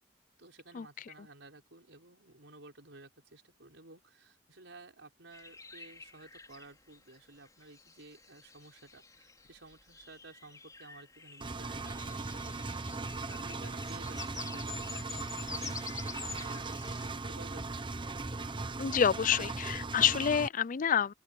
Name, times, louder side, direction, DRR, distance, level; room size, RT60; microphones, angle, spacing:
voice 1, 0.4-12.7 13.3-17.7, right 2 dB, 85° right, 4.8 m, -54 dB
sound 1, 5.3-17.1, left 4 dB, 20° left, 3.6 m, -48 dB
Engine, 11.4-20.5, right 3 dB, 25° right, 0.9 m, -38 dB
voice 2, 18.8-21.1, left 8 dB, 45° left, 0.4 m, -28 dB
open air
head